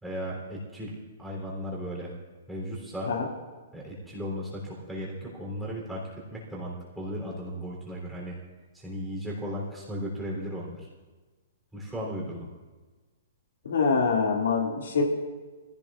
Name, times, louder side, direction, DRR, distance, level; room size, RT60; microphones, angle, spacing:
voice 1, 0.0-2.1 2.5-3.1 3.7-6.0 6.3-8.4 8.7-10.8 11.7-12.5, equal, 5° right, -4 dB, 3.4 m, -36 dB
voice 2, 13.6-15.0, left 5 dB, 85° left, -1 dB, 2.3 m, -25 dB
25.0 x 16.0 x 2.5 m, 1.3 s
hypercardioid pair, 170°, 0 cm